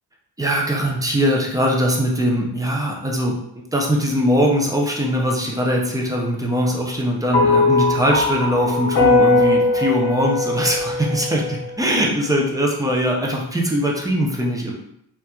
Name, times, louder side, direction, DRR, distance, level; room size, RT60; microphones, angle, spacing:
voice 1, 0.4-3.4 3.7-14.7, equal, 10° right, -1 dB, 0.3 m, -21 dB
sound 1, 7.3-11.8, left 2 dB, 90° left, 0.8 m, -19 dB
4.1 x 2.3 x 2.2 m, 0.76 s
wide cardioid pair, 170°, 39 cm